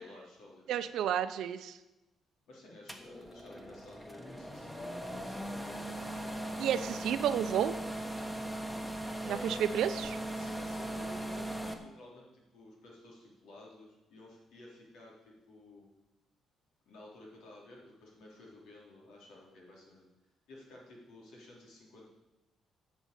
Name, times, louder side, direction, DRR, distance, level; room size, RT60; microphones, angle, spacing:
voice 1, 0.0-1.1 2.5-6.9 9.2-9.7 10.3-15.9 16.9-20.1 20.5-22.1, left 1 dB, 85° left, -3 dB, 3.8 m, -53 dB
voice 2, 0.7-1.8 6.6-7.8 9.3-10.1, right 10 dB, 80° right, 12 dB, 0.7 m, -31 dB
sound 1, 2.9-11.7, right 1 dB, 5° left, 1.3 m, -39 dB
10.0 x 6.2 x 8.3 m, 1.0 s
cardioid pair, 90°, 0 cm